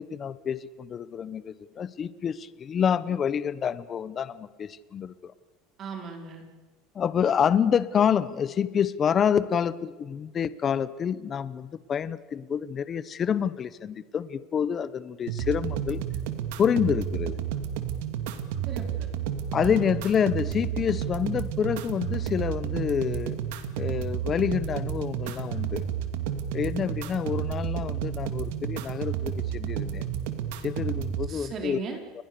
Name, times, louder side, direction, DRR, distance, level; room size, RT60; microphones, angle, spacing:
voice 1, 0.0-5.3 6.9-16.0 16.6-17.4 19.5-23.4 23.8-25.8 26.5-30.1 30.6-31.8 32.1-32.2, left 8 dB, 25° left, 16 dB, 1.0 m, -27 dB
voice 2, 5.8-6.4 18.7-19.1 19.6-19.9 31.3-32.0, right 5 dB, 35° right, 5 dB, 4.4 m, -37 dB
sound 1, 15.3-31.3, right 9 dB, 80° right, 2.5 m, -31 dB
30.0 x 21.5 x 7.0 m, 1.2 s
cardioid pair, 150°, 0 cm